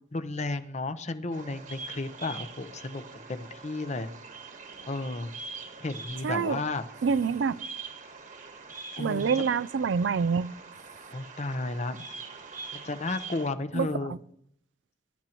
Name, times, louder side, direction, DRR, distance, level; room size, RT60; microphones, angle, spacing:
voice 1, 0.1-4.1 4.9-5.3 5.8-6.9 8.9-9.3 11.1-12.0 12.7-14.1, left 2 dB, 40° left, 0.8 m, -33 dB
Bird vocalization bird call bird song, 1.3-13.5, right 4 dB, 45° right, 1.3 m, -44 dB
voice 2, 6.2-6.6 7.0-7.6 9.0-10.5 13.7-14.2, right 5 dB, 90° right, 0.4 m, -27 dB
23.5 x 11.5 x 3.0 m
head